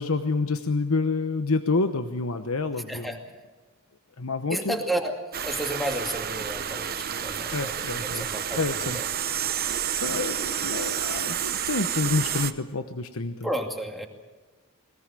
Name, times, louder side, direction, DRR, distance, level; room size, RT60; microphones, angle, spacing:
voice 1, 0.0-3.1 4.2-4.8 7.5-8.3 8.6-9.3 9.9-13.5, left 3 dB, 80° left, 8 dB, 1.0 m, -28 dB
voice 2, 4.5-9.1 13.4-14.1, right 1 dB, ahead, 3 dB, 2.4 m, -32 dB
sound 1, 5.3-12.5, right 9 dB, 45° right, 1.0 m, -30 dB
21.5 x 19.5 x 7.6 m, 1.3 s
head